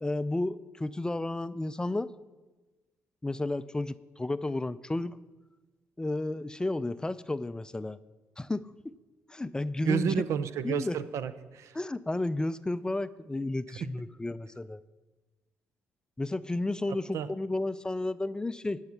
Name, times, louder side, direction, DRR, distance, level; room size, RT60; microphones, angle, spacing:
voice 1, 0.0-2.1 3.2-5.2 6.0-8.0 8.4-8.6 9.3-10.3 10.6-11.0 11.7-14.8 16.2-18.8, left 2 dB, 15° left, 15 dB, 0.4 m, -32 dB
voice 2, 9.8-11.7 17.1-17.3, right 7 dB, 70° right, 13 dB, 0.6 m, -30 dB
11.5 x 6.5 x 5.8 m, 1.2 s
supercardioid pair, 65°, 5 cm